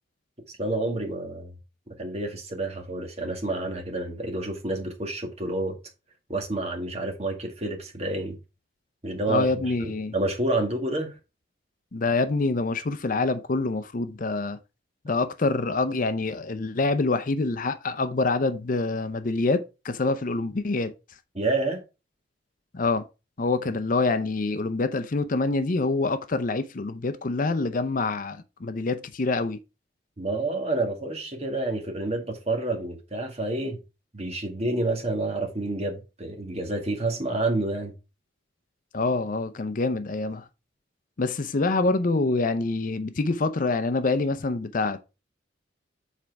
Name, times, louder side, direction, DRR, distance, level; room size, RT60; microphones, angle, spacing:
voice 1, 0.5-1.5 2.0-5.8 6.3-8.4 9.0-11.1 21.3-21.8 30.2-33.8 34.1-37.9, right 2 dB, 35° right, 1.9 m, -29 dB
voice 2, 9.3-10.1 11.9-14.6 15.0-20.9 22.7-23.1 23.4-29.6 38.9-40.4 41.2-45.0, left 3 dB, 45° left, 0.6 m, -26 dB
7.5 x 4.4 x 4.6 m
head